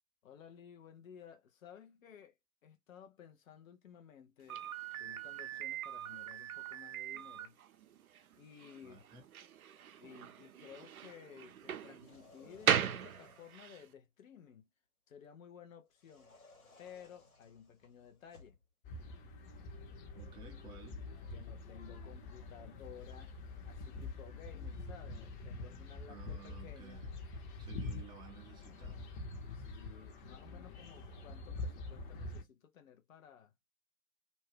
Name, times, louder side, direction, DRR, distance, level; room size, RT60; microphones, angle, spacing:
voice 1, 0.2-2.4 2.6-4.7 5.0-7.6 8.4-9.1 10.0-14.7 15.1-16.4 16.8-18.6 21.3-23.3 23.6-27.0 29.5-33.5, left 8 dB, 70° left, 0.8 m, -55 dB
Slam, 4.5-13.8, right 9 dB, 80° right, 0.5 m, -39 dB
voice 2, 8.8-9.2 20.1-21.0 26.1-27.1 27.6-29.0, right 6 dB, 10° right, 0.4 m, -54 dB
sound 1, 11.9-13.8 16.0-18.6, left 3 dB, 85° left, 1.5 m, -62 dB
sound 2, 18.8-32.4, left 3 dB, 35° left, 0.9 m, -45 dB
2.7 x 2.2 x 3.2 m
figure-of-eight pair, 110°, 42 cm